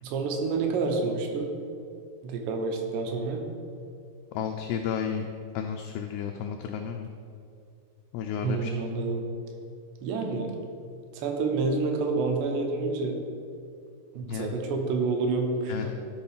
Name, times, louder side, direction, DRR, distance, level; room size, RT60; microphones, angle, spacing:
voice 1, 0.0-1.5 2.2-3.5 8.4-9.3 10.0-10.5 11.1-13.2 14.1-15.9, right 3 dB, 80° right, 3 dB, 3.1 m, -28 dB
voice 2, 4.3-5.3 5.5-7.1 8.1-8.7 14.2-14.5 15.7-15.9, left 7 dB, 85° left, 4 dB, 2.2 m, -32 dB
12.5 x 4.2 x 5.7 m, 2.4 s
omnidirectional pair, 5.0 m